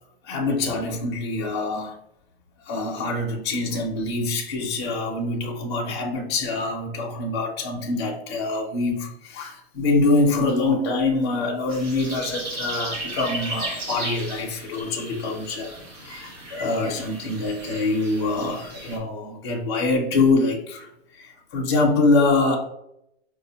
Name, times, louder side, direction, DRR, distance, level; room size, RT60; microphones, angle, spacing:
voice 1, 0.2-2.0 2.7-15.8 16.0-20.9 21.1-22.6, left 3 dB, 25° left, -2 dB, 0.4 m, -24 dB
sound 1, 11.7-19.0, right 2 dB, 25° right, 0.6 m, -35 dB
4.5 x 2.0 x 2.7 m, 0.80 s
supercardioid pair, 175°, 31 cm